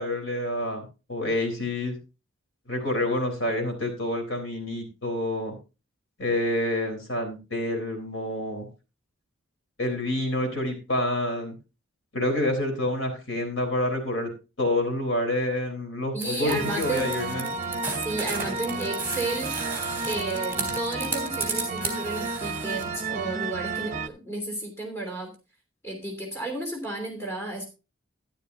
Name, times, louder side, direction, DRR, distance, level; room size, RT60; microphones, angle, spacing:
voice 1, 0.0-2.0 2.7-5.5 6.2-8.7 9.8-11.5 12.1-14.3 14.6-17.5, left 1 dB, 65° left, 3 dB, 3.9 m, -28 dB
voice 2, 16.1-17.1 18.0-19.6 20.1-25.3 25.8-27.6, right 2 dB, 15° left, 2 dB, 3.0 m, -32 dB
sound 1, 16.2-22.8, right 4 dB, 10° right, 3.2 m, -34 dB
sound 2, 16.5-24.1, right 3 dB, 35° right, 0.8 m, -32 dB
12.5 x 11.5 x 2.7 m, 0.30 s
head